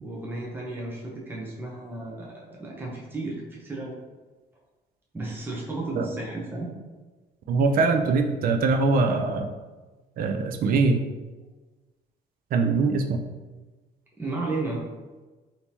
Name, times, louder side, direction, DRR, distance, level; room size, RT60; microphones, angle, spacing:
voice 1, 0.0-4.0 5.1-6.7 14.2-14.8, right 2 dB, 10° right, -4 dB, 0.7 m, -33 dB
voice 2, 7.5-9.5 10.2-11.0 12.5-13.2, right 4 dB, 55° right, 5 dB, 0.4 m, -22 dB
3.3 x 2.8 x 2.9 m, 1.2 s
cardioid pair, 105°, 18 cm